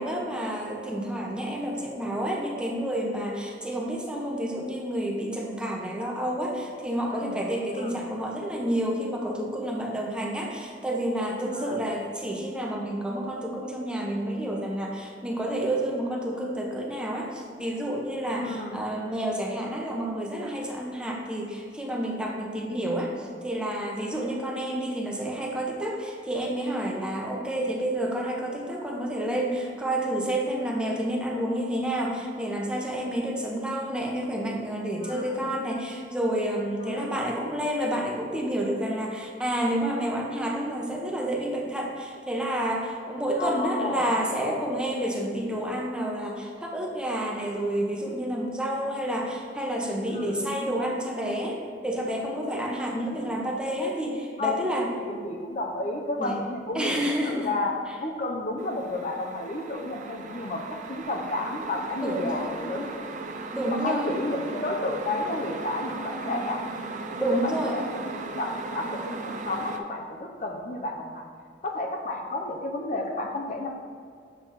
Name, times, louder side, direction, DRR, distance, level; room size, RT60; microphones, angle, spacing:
voice 1, 0.0-54.9 56.2-56.4 56.7-57.5 62.0-62.5 63.5-64.1 66.2-66.4 67.2-67.8, right 1 dB, 5° right, -1 dB, 0.8 m, -29 dB
voice 2, 11.4-11.9 18.4-18.8 35.0-35.4 36.8-37.2 43.4-44.6 50.1-50.5 53.0-53.1 54.4-54.6 55.0-63.2 63.8-66.6 67.4-69.2 69.4-71.3 71.6-73.7, left 2 dB, 45° left, 2 dB, 0.6 m, -32 dB
sound 1, 58.6-69.8, right 3 dB, 45° right, 0.5 m, -37 dB
7.4 x 3.4 x 5.7 m, 2.1 s
head